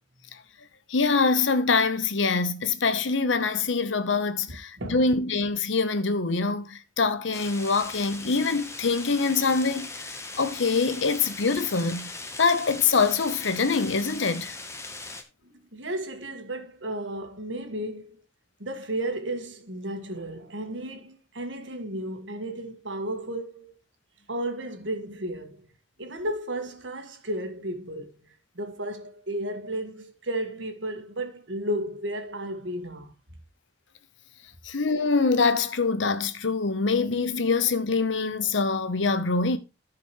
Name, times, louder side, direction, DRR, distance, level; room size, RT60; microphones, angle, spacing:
voice 1, 0.9-10.1 10.4-12.1 12.4-14.6 34.6-39.6, left 4 dB, 90° left, 0.9 m, -24 dB
voice 2, 4.5-5.0 15.4-18.2 18.6-23.7 24.3-25.7 26.0-28.2 28.5-33.1, right 1 dB, 80° right, 1.7 m, -33 dB
sound 1, 7.3-15.2, left 3 dB, 15° left, 1.0 m, -39 dB
14.0 x 5.1 x 3.1 m
head